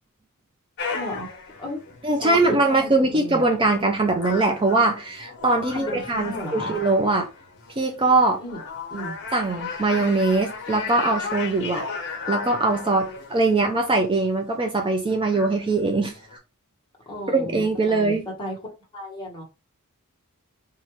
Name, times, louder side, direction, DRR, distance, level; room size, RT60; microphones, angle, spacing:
sound 1, 0.8-16.4, left 4 dB, 55° left, 0.9 m, -36 dB
voice 1, 0.9-1.3 1.6-1.8 2.1-3.6 5.7-6.7 8.4-8.6 8.9-9.2 17.1-18.6 18.9-19.4, equal, 20° left, 1.2 m, -34 dB
voice 2, 2.0-7.3 7.8-8.4 9.3-11.8 12.3-16.1 17.3-18.2, right 2 dB, 20° right, 0.4 m, -22 dB
4.3 x 2.4 x 3.0 m
head